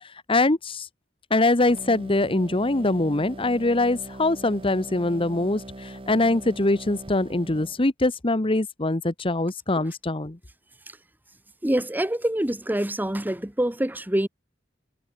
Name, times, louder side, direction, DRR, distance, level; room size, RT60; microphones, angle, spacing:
voice 1, 0.3-0.9 1.3-10.4, left 2 dB, 30° left, 1.1 m, -23 dB
sound 1, 1.6-7.8, right 1 dB, 30° right, 1.3 m, -41 dB
voice 2, 11.6-14.3, right 1 dB, 10° right, 1.0 m, -26 dB
head